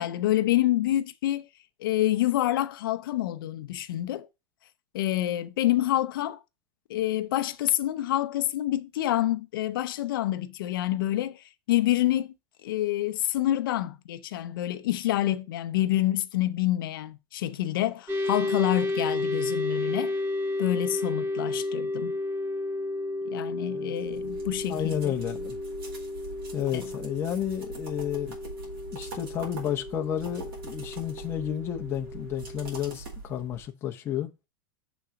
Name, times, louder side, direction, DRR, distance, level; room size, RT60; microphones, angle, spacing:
voice 1, 0.0-1.5 1.8-4.3 4.9-6.4 6.9-12.3 12.6-20.1 20.6-22.1 23.3-25.1 26.7-26.8, left 14 dB, 65° left, 0.6 m, -27 dB
sound 1, 18.1-32.8, left 2 dB, 20° right, 1.1 m, -32 dB
sound 2, 24.0-33.7, right 3 dB, 85° right, 4.4 m, -43 dB
voice 2, 24.7-25.6 26.5-28.4 28.9-34.3, left 10 dB, 20° left, 0.7 m, -31 dB
6.0 x 3.9 x 5.7 m
supercardioid pair, 160°, 12 cm